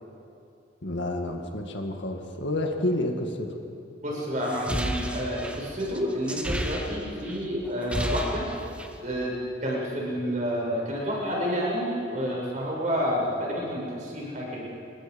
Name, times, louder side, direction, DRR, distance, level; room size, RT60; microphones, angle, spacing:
voice 1, 0.8-3.5, left 1 dB, 70° left, 2 dB, 2.0 m, -29 dB
voice 2, 4.0-8.5 9.0-9.4 9.6-14.6, equal, 40° right, -3 dB, 7.0 m, -29 dB
sound 1, 4.4-7.4 7.7-9.0, equal, 5° right, 1.2 m, -32 dB
28.5 x 22.0 x 5.4 m, 2.6 s
head